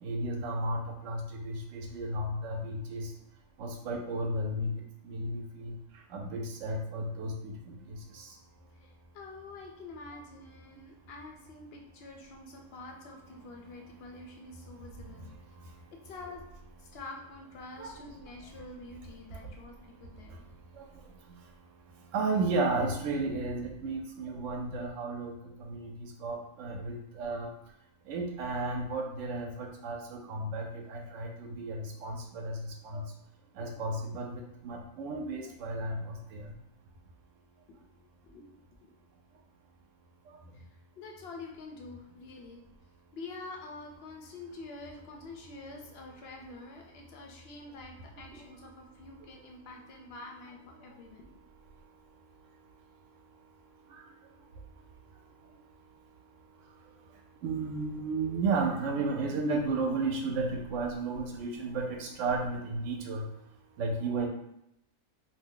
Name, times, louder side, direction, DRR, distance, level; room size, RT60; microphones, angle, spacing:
voice 1, 0.0-3.1 3.6-4.7 5.0-5.7 6.1-8.3 17.8-17.9 20.8-20.9 22.1-25.3 25.6-25.9 26.2-27.5 28.1-33.0 33.6-36.4 53.9-54.0 57.4-63.2 63.8-64.3, right 2 dB, 70° right, 2 dB, 0.9 m, -33 dB
voice 2, 8.8-15.3 16.0-16.4 16.8-20.4 37.7-37.8 38.2-38.4 38.8-39.0 40.5-40.7 41.0-42.6 43.1-51.4, left 3 dB, 65° left, 1 dB, 0.6 m, -47 dB
2.6 x 2.1 x 3.6 m, 0.80 s
omnidirectional pair, 1.4 m